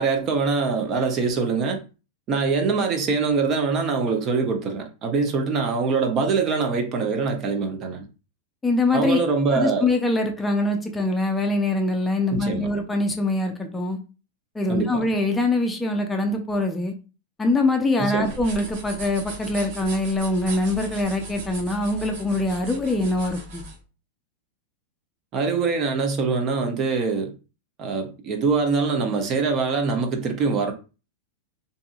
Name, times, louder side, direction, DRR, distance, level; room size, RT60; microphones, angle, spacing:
voice 1, 0.0-1.8 2.3-8.0 8.9-9.9 12.3-12.7 14.7-15.0 18.0-18.3 25.3-27.3 27.8-30.7, right 4 dB, 40° right, 0.7 m, -23 dB
voice 2, 8.6-9.2 9.5-14.0 14.5-16.9 17.4-23.6, left 2 dB, 15° left, 0.5 m, -23 dB
sound 1, 18.2-23.8, right 1 dB, 60° right, 1.0 m, -38 dB
2.6 x 2.6 x 2.4 m
hypercardioid pair, 110°, 0 cm